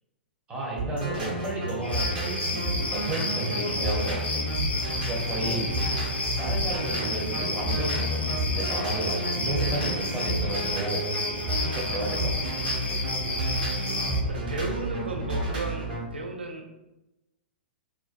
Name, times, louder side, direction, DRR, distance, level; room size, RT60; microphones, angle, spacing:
voice 1, 0.5-4.4 4.9-5.7 6.4-11.1 11.5-12.5, right 2 dB, 20° right, -5 dB, 0.7 m, -33 dB
sound 1, 0.8-16.0, right 1 dB, 60° right, 0.9 m, -30 dB
sound 2, 1.8-14.2, left 2 dB, 85° left, 0.4 m, -32 dB
voice 2, 5.4-6.1 6.7-6.9 11.9-12.1 13.9-16.7, right 2 dB, 80° right, 3 dB, 0.4 m, -36 dB
2.5 x 2.1 x 2.4 m, 0.97 s
figure-of-eight pair, 105°, 6 cm